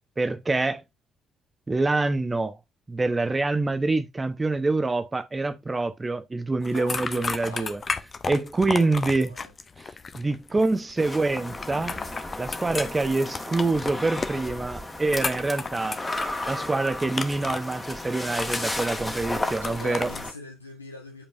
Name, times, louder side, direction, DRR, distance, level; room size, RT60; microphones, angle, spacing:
voice 1, 0.2-0.8 1.7-2.6 2.9-7.8 8.3-9.3 10.1-12.0 12.4-16.0 16.5-20.1, right 3 dB, 20° right, 1.0 m, -26 dB
sound 1, 6.6-20.3, left 4 dB, 35° left, 0.8 m, -34 dB
voice 2, 6.7-7.8 8.7-9.5 19.3-21.3, left 2 dB, 85° left, 1.5 m, -43 dB
sound 2, 11.0-20.3, left 1 dB, 15° left, 1.9 m, -34 dB
8.9 x 5.1 x 2.6 m
figure-of-eight pair, 45°, 0 cm